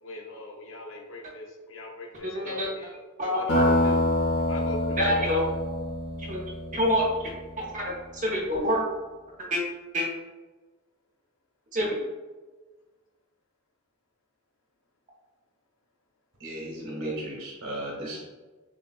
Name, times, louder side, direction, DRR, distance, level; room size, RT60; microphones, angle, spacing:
voice 1, 0.0-2.9 3.2-4.0 4.5-5.4, left 2 dB, 60° left, 0 dB, 0.6 m, -40 dB
voice 2, 2.2-2.7 3.2-3.7 5.0-5.5 6.2-6.4 6.7-7.3 7.7-8.8 9.5-9.6 9.9-10.1 11.7-12.0, equal, 35° right, -3 dB, 0.9 m, -26 dB
sound 1, 3.5-7.8, left 1 dB, 80° left, 1.1 m, -26 dB
voice 3, 16.4-18.2, right 1 dB, 75° right, -4 dB, 1.5 m, -35 dB
7.0 x 2.4 x 2.3 m, 1.3 s
head